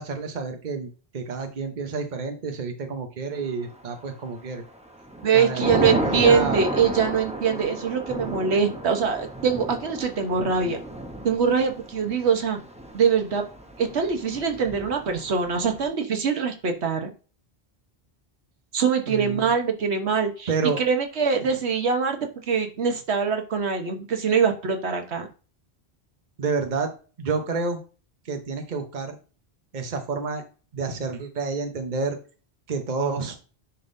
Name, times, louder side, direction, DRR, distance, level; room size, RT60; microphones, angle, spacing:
voice 1, 0.0-4.6 5.3-6.7 19.0-19.5 20.5-20.8 26.4-26.9 27.2-27.8 28.2-29.2 29.7-30.4 30.7-32.2 32.7-33.3, right 4 dB, 45° right, 5 dB, 1.0 m, -29 dB
Thunder / Rain, 3.8-4.3 4.7-15.9, right 1 dB, 5° right, 0.7 m, -33 dB
voice 2, 5.2-10.8 11.2-12.6 12.9-13.4 13.8-17.1 18.7-20.5 20.8-25.3, right 6 dB, 85° right, 4 dB, 1.3 m, -23 dB
10.0 x 3.6 x 2.6 m, 0.36 s
omnidirectional pair, 1.1 m